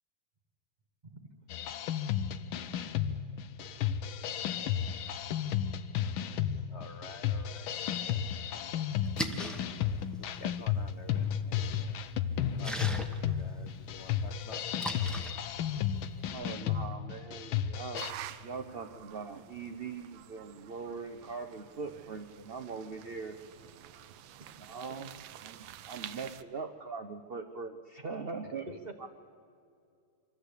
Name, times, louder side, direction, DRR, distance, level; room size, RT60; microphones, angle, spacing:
voice 1, 1.0-2.6 3.1-3.3 3.6-4.9 6.2-6.9 24.1-24.7 28.8-28.9, right 3 dB, 30° right, 4 dB, 0.9 m, -56 dB
sound 1, 1.5-18.1, left 9 dB, 90° left, 1.5 m, -33 dB
voice 2, 6.7-7.7 8.1-8.2 8.5-9.1 10.2-14.6 28.4-28.5, left 5 dB, 70° left, 7 dB, 0.6 m, -48 dB
Splash splatter, 8.9-16.3, equal, ahead, 0.7 m, -42 dB
voice 3, 16.3-18.1 18.4-23.4 24.6-25.1 25.4-28.7 29.0-29.1, right 4 dB, 65° right, 6 dB, 0.5 m, -41 dB
sound 2, 18.0-26.4, right 11 dB, 80° right, 1.4 m, -49 dB
24.5 x 14.0 x 8.2 m, 2.4 s
omnidirectional pair, 2.2 m